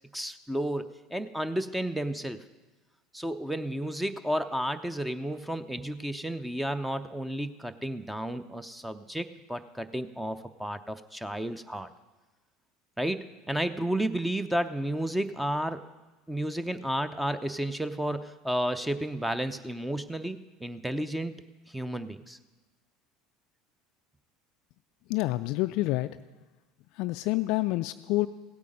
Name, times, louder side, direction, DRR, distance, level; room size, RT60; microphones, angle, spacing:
voice 1, 0.1-2.4 3.1-11.9 13.0-15.8 16.3-21.3 21.7-22.4, right 1 dB, 5° right, 11 dB, 0.6 m, -32 dB
voice 2, 25.1-26.2 26.9-28.3, left 18 dB, 60° left, 10 dB, 0.3 m, -28 dB
16.5 x 8.5 x 5.3 m, 1.2 s
figure-of-eight pair, 70°, 0 cm